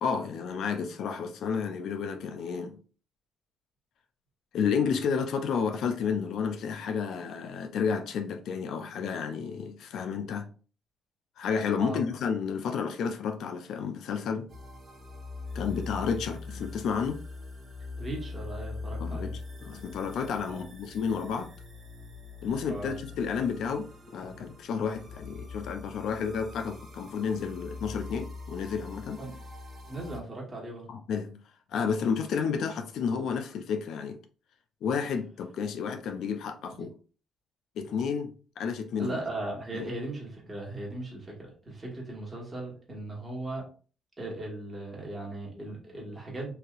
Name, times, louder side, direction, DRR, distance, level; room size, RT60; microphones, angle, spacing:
voice 1, 0.0-2.8 4.5-10.5 11.4-14.5 15.5-17.2 19.0-21.5 22.4-29.2 30.9-31.4 31.7-34.2 34.8-36.9 37.8-39.2 39.7-39.9, left 6 dB, 75° left, 0.4 m, -31 dB
sound 1, 14.5-30.2, left 3 dB, 45° right, 0.8 m, -42 dB
voice 2, 18.0-19.3 20.4-20.6 22.7-22.9 29.2-29.4 29.9-30.9 36.8-36.9 39.0-43.7 44.2-46.5, right 2 dB, 25° right, 1.4 m, -38 dB
3.3 x 2.6 x 2.4 m
cardioid pair, 85°, 0 cm